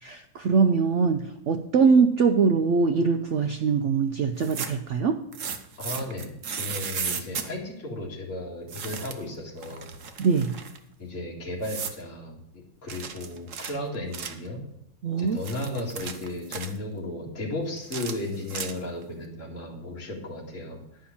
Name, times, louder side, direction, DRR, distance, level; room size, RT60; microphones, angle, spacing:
voice 1, 0.0-5.2 10.2-10.5 15.0-15.4, right 5 dB, 75° right, 7 dB, 0.6 m, -22 dB
sound 1, 4.3-4.9 5.3-7.5 8.7-9.3 9.6-10.8 11.6-12.0 12.9-14.5 15.2-16.8 17.8-19.0, right 6 dB, 50° right, 1.1 m, -35 dB
voice 2, 5.8-9.9 11.0-14.7 15.2-20.8, left 1 dB, 40° left, -2 dB, 2.7 m, -35 dB
10.5 x 5.6 x 7.1 m, 0.78 s
omnidirectional pair, 2.0 m